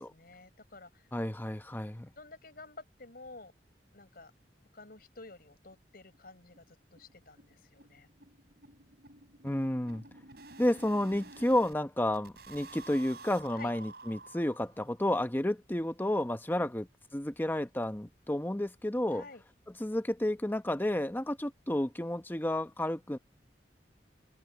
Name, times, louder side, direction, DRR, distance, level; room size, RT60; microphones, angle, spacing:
voice 1, 0.0-1.1 2.2-3.5 3.9-4.3 4.7-8.1 13.5-13.7 19.1-19.4, left 3 dB, 60° left, 5.9 m, -51 dB
voice 2, 1.1-2.1 9.4-10.1 10.6-16.9 17.1-19.2 19.8-23.2, left 1 dB, 10° left, 0.9 m, -31 dB
sound 1, 4.9-5.0 5.3-5.4 5.7-5.8 6.1-6.3 6.5-11.8 12.1-14.9, right 3 dB, 65° right, 4.9 m, -52 dB
open air
head